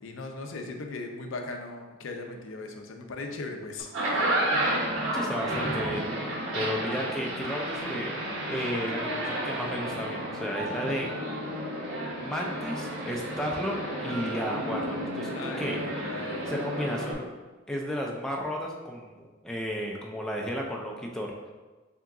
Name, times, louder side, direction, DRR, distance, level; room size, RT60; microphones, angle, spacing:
voice 1, 0.0-4.3 15.4-16.4, left 3 dB, 70° left, 3 dB, 0.5 m, -38 dB
sound 1, 3.8-17.1, right 1 dB, 70° right, 1.2 m, -31 dB
voice 2, 5.1-6.1 6.5-11.1 12.2-15.9 16.4-17.3 17.7-21.3, equal, 5° left, -1 dB, 0.3 m, -33 dB
3.5 x 2.9 x 3.6 m, 1.3 s
head